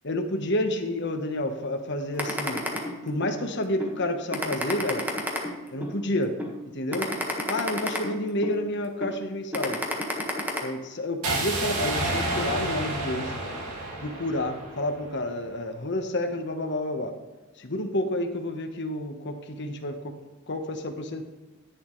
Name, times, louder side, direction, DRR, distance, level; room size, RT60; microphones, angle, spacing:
voice 1, 0.0-2.6 3.0-5.1 5.7-6.3 6.6-7.1 7.5-9.8 10.6-13.3 14.0-17.1 17.6-20.1 20.5-21.2, left 1 dB, 55° left, 5 dB, 1.2 m, -29 dB
sound 1, 2.2-3.4 3.8-3.9 4.3-6.0 6.4-6.5 6.9-8.6 9.0-9.2 9.5-10.6, equal, 10° right, 1.6 m, -30 dB
sound 2, 11.2-15.3, right 2 dB, 90° right, 2.4 m, -30 dB
10.5 x 10.5 x 3.2 m, 1.2 s
head